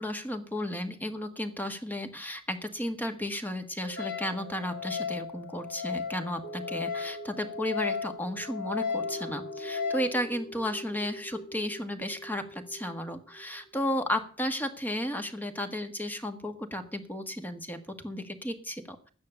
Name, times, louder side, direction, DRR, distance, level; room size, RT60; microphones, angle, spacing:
voice 1, 0.0-19.1, left 1 dB, 10° left, 7 dB, 1.4 m, -34 dB
sound 1, 3.8-14.2 14.6-14.7, right 3 dB, 50° left, 2.9 m, -46 dB
Wind instrument woodwind instrument, 4.0-10.1, left 6 dB, 80° left, 3.1 m, -35 dB
12.0 x 9.6 x 6.9 m, 0.41 s
head